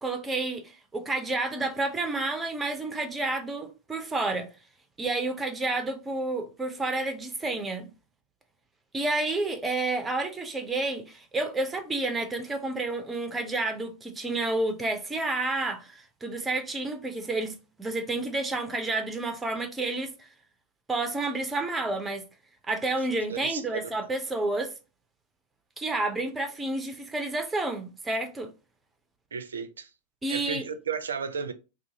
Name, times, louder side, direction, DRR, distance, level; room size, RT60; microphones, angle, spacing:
voice 1, 0.0-4.5 5.0-7.9 8.9-20.3 20.9-22.2 22.7-24.7 25.8-28.5 30.2-30.6, right 2 dB, 10° right, 0.5 m, -30 dB
voice 2, 23.1-23.8 29.3-29.9 30.3-31.5, right 6 dB, 70° right, 0.4 m, -34 dB
2.6 x 2.4 x 2.7 m
figure-of-eight pair, 90°, 0 cm